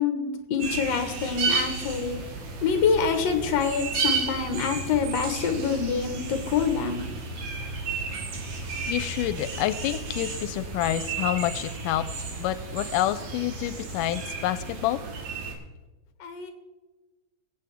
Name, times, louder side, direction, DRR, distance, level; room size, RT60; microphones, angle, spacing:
voice 1, 0.0-2.2 2.6-7.0 16.2-16.5, left 6 dB, 60° left, 6 dB, 2.3 m, -26 dB
sound 1, 0.6-15.6, right 4 dB, 65° right, 2.9 m, -33 dB
voice 2, 8.9-12.0 12.4-15.0, left 13 dB, 90° left, 13 dB, 2.2 m, -28 dB
23.5 x 8.1 x 3.6 m, 1.2 s
omnidirectional pair, 3.7 m